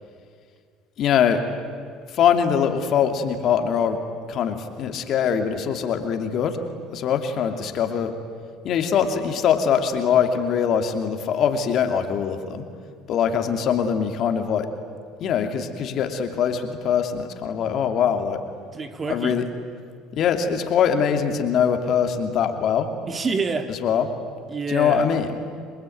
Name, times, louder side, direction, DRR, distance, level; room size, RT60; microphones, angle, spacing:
voice 1, 1.0-1.4 2.1-4.0 4.3-6.6 6.9-8.1 8.6-12.6 13.1-14.7 15.2-18.4 19.1-19.4 20.1-22.9 23.8-24.0 24.7-25.3, left 7 dB, 55° left, 6 dB, 2.8 m, -22 dB
voice 2, 18.7-19.4 23.1-23.7 24.5-25.1, right 4 dB, 30° right, 7 dB, 2.6 m, -27 dB
28.0 x 22.0 x 9.4 m, 2.1 s
hypercardioid pair, 75°, 0 cm